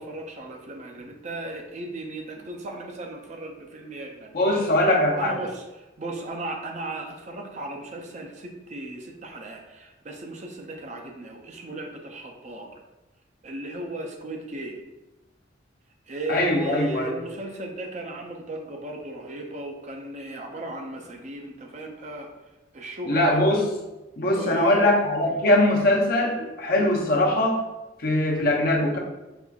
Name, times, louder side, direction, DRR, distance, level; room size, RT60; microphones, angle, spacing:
voice 1, 0.0-5.6 6.0-12.8 13.4-14.8 16.1-22.3 22.7-23.4 24.3-24.9, right 2 dB, 40° right, 2 dB, 0.4 m, -36 dB
voice 2, 4.3-5.3 16.3-17.2 23.1-23.6 24.2-27.6 28.0-29.0, left 1 dB, 50° left, 0 dB, 0.6 m, -21 dB
5.3 x 2.4 x 2.3 m, 1.0 s
head